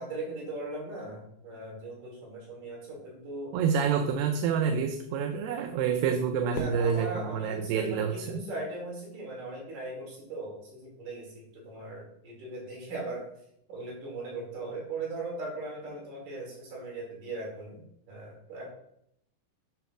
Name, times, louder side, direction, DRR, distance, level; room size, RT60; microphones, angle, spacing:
voice 1, 0.0-3.6 6.4-13.2 13.7-17.8 18.1-18.7, right 2 dB, 65° right, -2 dB, 4.0 m, -39 dB
voice 2, 3.5-8.4, right 7 dB, 80° right, 5 dB, 2.3 m, -28 dB
Fireworks, 6.5-8.9, left 2 dB, 85° left, 1.2 m, -43 dB
8.8 x 3.1 x 6.0 m, 0.74 s
omnidirectional pair, 4.1 m